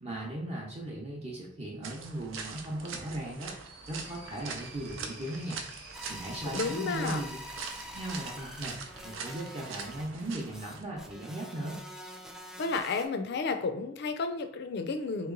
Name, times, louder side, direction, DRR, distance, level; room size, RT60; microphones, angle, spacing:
voice 1, 0.0-3.5 3.9-5.6 6.1-7.4 7.9-11.8, right 1 dB, 30° right, -2 dB, 0.7 m, -38 dB
sound 1, 1.8-10.8, right 5 dB, 85° right, 0.5 m, -43 dB
sound 2, 3.2-9.4, right 2 dB, 55° right, 0.9 m, -51 dB
sound 3, 5.9-13.1, equal, 5° right, 0.3 m, -46 dB
voice 2, 6.4-7.2 12.6-15.3, left 4 dB, 60° left, 7 dB, 0.5 m, -32 dB
3.0 x 2.9 x 3.8 m, 0.69 s
head